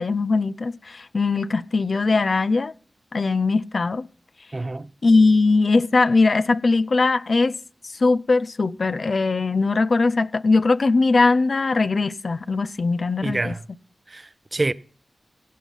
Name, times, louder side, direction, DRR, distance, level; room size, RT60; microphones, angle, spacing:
voice 1, 0.0-2.7 3.1-4.0 5.0-7.5 8.0-13.5, left 3 dB, 60° left, 0.4 m, -20 dB
voice 2, 4.5-4.9 13.2-13.6 14.1-14.7, right 2 dB, 35° right, 0.6 m, -27 dB
16.5 x 5.6 x 5.4 m
cardioid pair, 45°, 0 cm